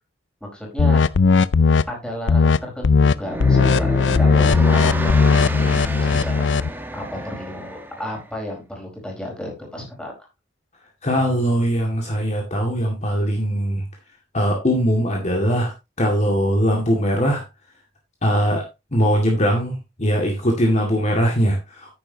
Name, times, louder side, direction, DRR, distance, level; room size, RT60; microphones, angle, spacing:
voice 1, 0.4-1.0 1.9-6.5 6.9-10.1, equal, 5° left, -1 dB, 4.5 m, -33 dB
sound 1, 0.8-1.8 2.3-2.6 2.8-3.1 3.4-6.7, left 4 dB, 70° left, 0.5 m, -17 dB
sound 2, 3.2-8.3, right 1 dB, 10° right, 1.3 m, -30 dB
voice 2, 11.0-13.8 14.3-15.7 16.0-17.4 18.2-18.6 18.9-21.9, equal, 40° left, 1 dB, 2.1 m, -20 dB
10.5 x 9.3 x 2.9 m, 0.23 s
head